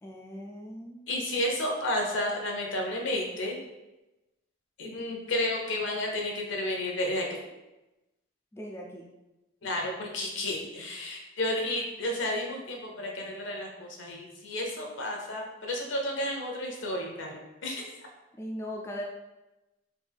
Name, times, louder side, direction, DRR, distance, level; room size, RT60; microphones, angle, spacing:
voice 1, 0.0-1.2 8.5-9.1 18.4-19.0, equal, 15° left, -1 dB, 0.3 m, -39 dB
voice 2, 1.1-3.6 4.8-7.3 9.6-17.9, left 1 dB, 70° left, 1 dB, 0.7 m, -32 dB
3.3 x 2.5 x 3.4 m, 1.0 s
head